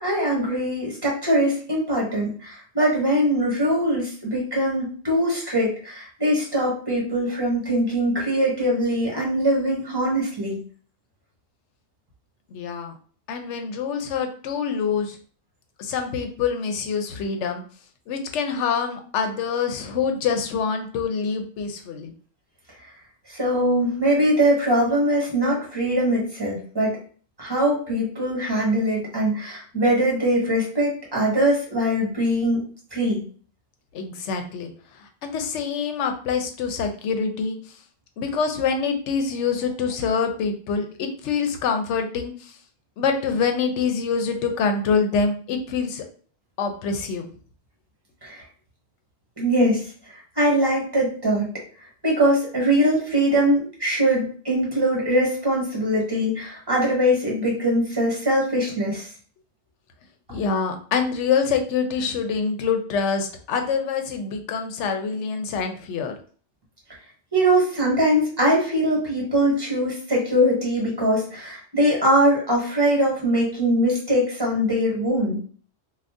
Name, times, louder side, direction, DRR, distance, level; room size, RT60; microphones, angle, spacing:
voice 1, 0.0-10.6 23.3-27.0 27.4-32.6 32.9-33.2 48.2-48.4 49.4-49.8 50.4-51.5 52.0-59.1 67.3-75.4, equal, 20° right, -3 dB, 1.2 m, -22 dB
voice 2, 12.5-12.9 13.3-15.2 15.8-17.6 18.1-22.1 33.9-34.7 35.2-37.6 38.2-42.5 43.0-46.0 46.6-47.3 60.3-66.1, left 5 dB, 90° left, 5 dB, 0.9 m, -25 dB
2.6 x 2.3 x 3.4 m, 0.43 s
omnidirectional pair, 1.2 m